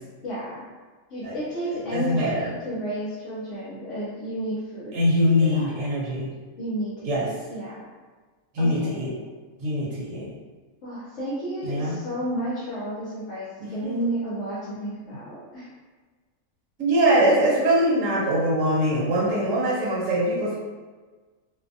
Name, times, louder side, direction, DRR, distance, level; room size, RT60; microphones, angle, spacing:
voice 1, 0.2-0.6 1.1-5.0 5.4-5.8 6.6-7.8 8.6-9.1 10.8-15.7, right 1 dB, 60° left, -8 dB, 0.9 m, -32 dB
voice 2, 1.9-2.5 4.9-6.3 7.0-7.3 8.5-9.1 9.6-10.3 11.6-11.9 13.6-13.9 16.8-20.5, equal, 60° right, -6 dB, 1.2 m, -22 dB
2.6 x 2.1 x 2.6 m, 1.4 s
omnidirectional pair, 1.6 m